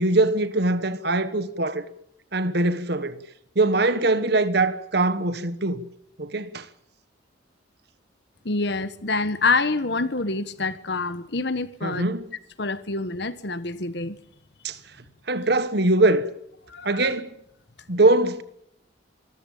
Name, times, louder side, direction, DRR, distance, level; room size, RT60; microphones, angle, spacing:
voice 1, 0.0-1.9 2.3-3.2 3.5-5.9 6.2-6.7 11.8-12.2 14.6-14.8 15.3-16.3 16.8-17.3 17.9-18.4, right 2 dB, 55° right, 1.3 m, -22 dB
voice 2, 8.4-12.1 12.6-14.2 16.7-17.1, left 3 dB, 60° left, 1.3 m, -26 dB
24.0 x 14.0 x 8.9 m
head